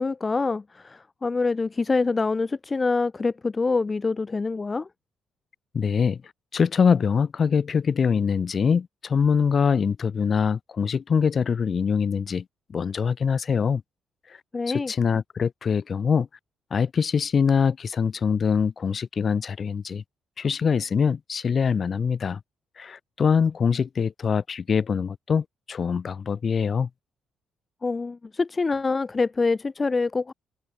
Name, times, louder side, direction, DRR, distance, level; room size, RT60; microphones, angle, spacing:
voice 1, 0.0-4.9 14.5-14.9 27.8-30.3, left 4 dB, 30° left, 0.4 m, -25 dB
voice 2, 5.7-6.2 6.5-12.4 12.7-13.8 14.3-14.4 14.7-16.3 16.7-20.0 20.4-22.4 22.8-26.9, left 6 dB, 45° left, 3.0 m, -23 dB
cardioid pair, 90°, 0 cm